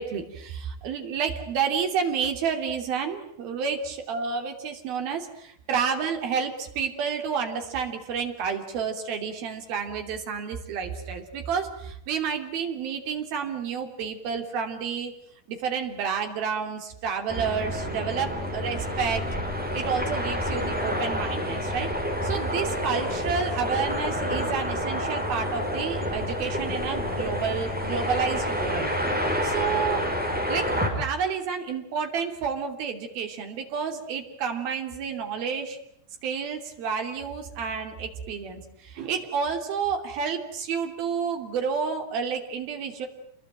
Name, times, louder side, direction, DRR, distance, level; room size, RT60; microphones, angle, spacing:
voice 1, 0.0-15.1 15.5-19.2 19.7-21.9 22.2-28.9 29.4-30.1 30.5-35.8 36.2-43.1, right 6 dB, 70° right, 5 dB, 4.8 m, -30 dB
sound 1, 17.3-30.9, equal, ahead, 5.0 m, -28 dB
28.0 x 22.0 x 9.1 m, 0.72 s
omnidirectional pair, 4.6 m